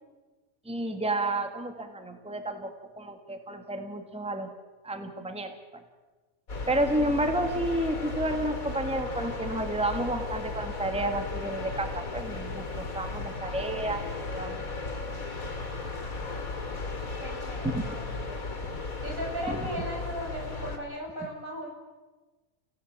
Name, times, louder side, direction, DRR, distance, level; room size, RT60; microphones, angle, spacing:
voice 1, 0.7-2.7 3.0-4.5 4.8-5.8 6.7-14.8 17.6-17.9 19.5-19.6, right 1 dB, 5° right, 6 dB, 1.9 m, -31 dB
sound 1, 6.5-20.8, left 3 dB, 90° left, 3.6 m, -35 dB
voice 2, 17.2-18.4 19.0-21.7, equal, 75° right, -1 dB, 7.9 m, -37 dB
29.5 x 17.0 x 8.9 m, 1.2 s
omnidirectional pair, 1.4 m